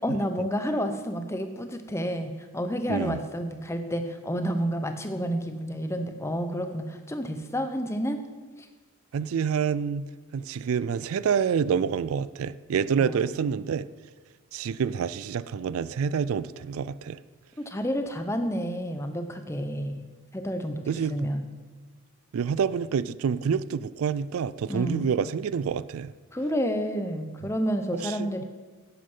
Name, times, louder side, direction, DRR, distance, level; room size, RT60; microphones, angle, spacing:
voice 1, 0.0-8.2 8.6-8.7 13.0-13.2 17.6-20.0 20.3-21.5 24.7-25.0 26.3-28.4, equal, 10° left, 7 dB, 0.7 m, -30 dB
voice 2, 9.1-13.9 14.5-17.2 20.9-21.3 22.3-26.1 28.0-28.4, right 7 dB, 75° right, 17 dB, 0.3 m, -27 dB
11.0 x 8.4 x 5.5 m, 1.4 s
head